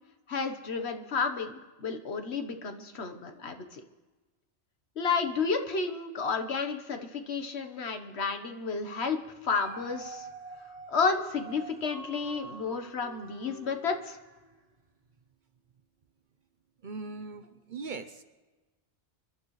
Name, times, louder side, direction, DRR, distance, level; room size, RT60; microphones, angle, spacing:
voice 1, 0.3-3.8 5.0-9.2 9.4-10.3 10.9-14.2, left 5 dB, 70° left, 7 dB, 1.4 m, -31 dB
Dog, 9.2-14.6 15.1-15.2, right 4 dB, 35° right, 1.2 m, -47 dB
voice 2, 16.8-18.2, right 4 dB, 50° right, 10 dB, 0.8 m, -40 dB
28.0 x 12.0 x 3.2 m, 1.2 s
omnidirectional pair, 1.2 m